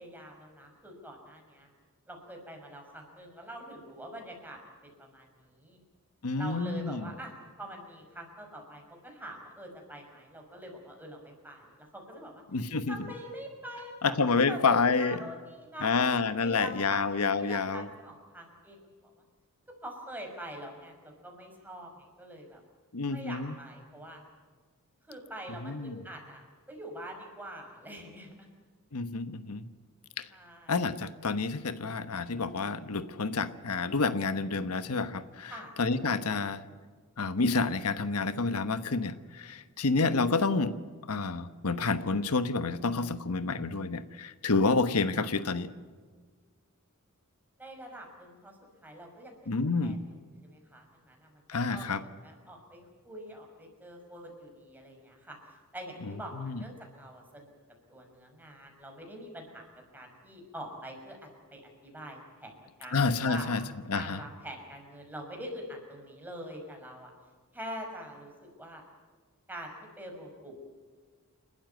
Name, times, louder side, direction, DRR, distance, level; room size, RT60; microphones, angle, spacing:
voice 1, 0.0-1.7 2.1-4.6 5.0-5.8 6.4-16.1 16.4-19.1 19.8-22.6 23.1-24.2 25.1-28.3 30.3-30.7 35.5-35.7 45.2-45.3 47.6-48.5 48.8-49.4 49.8-50.2 50.5-51.3 51.7-55.4 55.7-57.5 57.9-59.7 59.9-62.5 62.8-63.5 63.9-67.1 67.5-68.8 69.5-70.6, right 1 dB, 10° right, 1 dB, 5.9 m, -44 dB
voice 2, 6.2-7.1 12.5-13.0 14.0-15.2 15.8-17.8 22.9-23.5 25.6-25.9 28.9-29.7 30.2-30.3 30.7-35.5 35.8-36.6 37.2-40.7 41.1-45.7 49.5-50.0 51.5-52.0 56.3-56.6 62.9-63.6 63.9-64.2, left 4 dB, 85° left, 12 dB, 1.1 m, -29 dB
29.5 x 13.0 x 9.4 m, 1.5 s
head